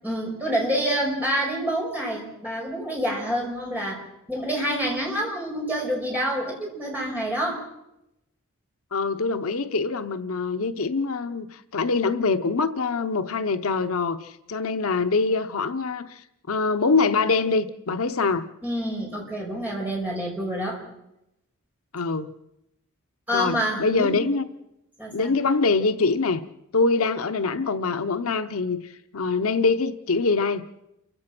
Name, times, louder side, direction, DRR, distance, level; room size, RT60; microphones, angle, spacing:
voice 1, 0.0-4.0 4.3-7.6 18.6-20.8 23.3-24.2 25.0-25.4, equal, 10° right, 5.7 m, -27 dB
voice 2, 8.9-18.4 21.9-22.3 23.3-24.4 25.1-26.4 26.7-30.7, left 4 dB, 75° left, 0.8 m, -24 dB
29.0 x 15.5 x 6.0 m
head